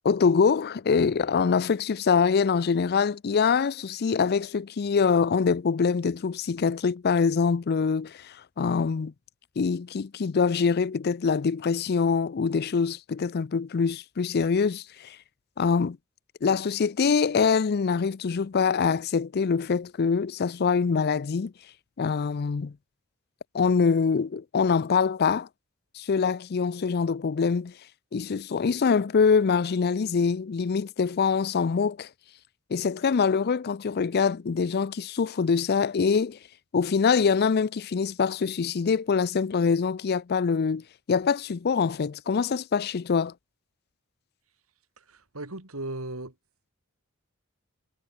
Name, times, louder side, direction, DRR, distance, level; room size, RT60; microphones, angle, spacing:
voice 1, 0.0-9.1 9.6-15.2 15.6-16.0 16.4-21.5 22.0-22.7 23.5-25.5 25.9-27.7 28.1-32.1 32.7-36.4 36.7-43.3, left 5 dB, 50° left, 0.4 m, -24 dB
voice 2, 45.0-46.4, right 2 dB, 80° right, 3.7 m, -37 dB
head